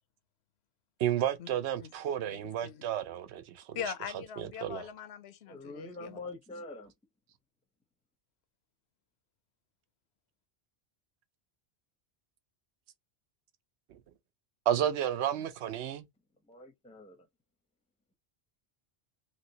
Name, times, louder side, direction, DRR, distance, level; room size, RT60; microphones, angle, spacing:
voice 1, 1.0-3.8 4.4-4.9 13.9-14.0 14.7-16.1, right 10 dB, 85° right, 0.9 m, -32 dB
voice 2, 3.7-6.2, left 8 dB, 75° left, 0.8 m, -41 dB
voice 3, 5.5-6.9 16.4-17.2, left 2 dB, 10° left, 0.5 m, -45 dB
3.1 x 2.9 x 2.7 m
omnidirectional pair, 1.1 m